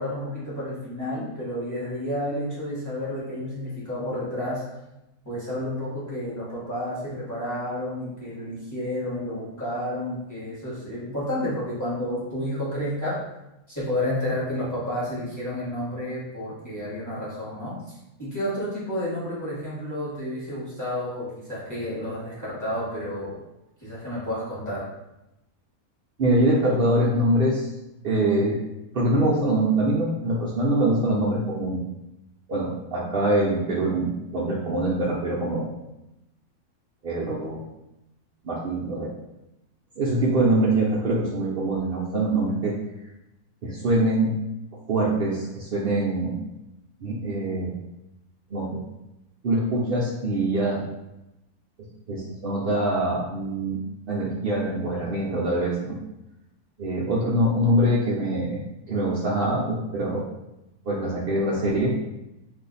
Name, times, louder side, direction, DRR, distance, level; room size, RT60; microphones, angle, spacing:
voice 1, 0.0-4.6 5.2-13.2 13.7-23.4 23.8-24.8, left 1 dB, 15° left, -9 dB, 1.1 m, -31 dB
voice 2, 26.2-27.7 28.0-28.6 28.9-31.8 32.5-35.6 37.0-37.6 38.4-39.1 40.0-42.7 43.6-44.3 44.9-46.4 47.0-47.8 48.5-48.8 49.4-50.8 52.1-53.8 54.1-56.0 56.8-58.6 58.9-60.3 60.9-61.9, right 1 dB, 85° right, -5 dB, 0.5 m, -24 dB
2.6 x 2.4 x 3.9 m, 0.92 s
omnidirectional pair, 1.6 m